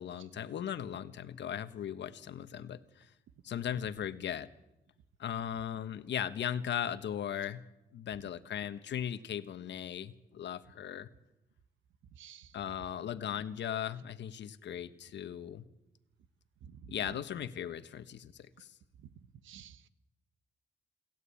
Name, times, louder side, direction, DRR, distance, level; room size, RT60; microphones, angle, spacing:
voice 1, 0.0-3.1 3.4-4.5 5.2-7.6 7.9-11.1 12.5-15.6 16.9-18.7, left 9 dB, 65° left, 11 dB, 1.3 m, -38 dB
voice 2, 12.2-12.5 19.5-19.9, right 10 dB, 80° right, 13 dB, 1.2 m, -52 dB
28.5 x 12.5 x 8.6 m, 0.94 s
cardioid pair, 90°, 20 cm